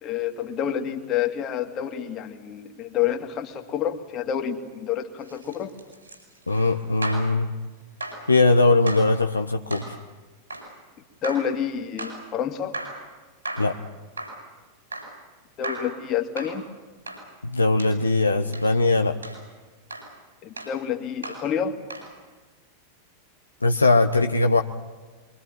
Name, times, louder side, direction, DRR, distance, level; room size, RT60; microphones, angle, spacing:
voice 1, 0.0-5.7 11.2-12.7 15.6-16.7 20.4-21.8, left 9 dB, 35° left, 4 dB, 2.5 m, -28 dB
sound 1, 5.2-7.3 8.0-8.3 8.9-9.1 9.7-9.9 10.5-10.7 11.2-11.5 12.0-12.2 12.7-13.0 13.4-13.8 14.2-14.4 14.9-15.2 15.6-16.0 16.4-16.6 17.1-17.3 17.8-18.0 18.5-18.7 19.2-19.4 19.9-20.1 20.6-20.8 21.2-21.5 21.9-22.1, right 1 dB, 80° right, 7.7 m, -36 dB
voice 2, 6.5-7.5 8.3-9.9 13.6-13.8 17.4-19.2 23.6-24.6, left 2 dB, 80° left, 5 dB, 1.0 m, -20 dB
24.5 x 24.0 x 9.2 m, 1.3 s
figure-of-eight pair, 90°, 0 cm